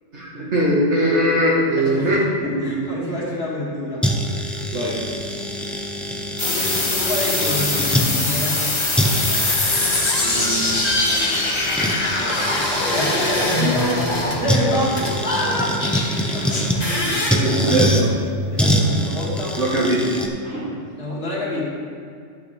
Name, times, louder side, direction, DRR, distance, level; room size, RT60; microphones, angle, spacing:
voice 1, 0.1-2.9 4.7-5.0 10.2-11.8 12.2-12.5 17.3-18.1 19.6-20.1 20.4-20.8, equal, 65° right, -6 dB, 1.8 m, -22 dB
voice 2, 1.8-4.1 6.5-8.6 12.5-12.6 12.9-14.1 14.3-15.8 16.1-17.4 17.7-17.8 18.5-19.6 21.0-21.7, left 1 dB, 50° left, -9 dB, 2.7 m, -27 dB
sound 1, 4.0-8.1 8.6-8.7 8.9-13.6 14.5-16.8 17.3-18.0 18.6-20.3, equal, ahead, 0.4 m, -24 dB
sound 2, 6.4-14.8 15.8-16.9, left 2 dB, 25° left, 0.8 m, -24 dB
sound 3, 9.3-14.4 15.0-15.1 16.6-17.3, left 1 dB, 85° left, 2.6 m, -25 dB
11.5 x 8.5 x 3.4 m, 2.3 s
omnidirectional pair, 1.3 m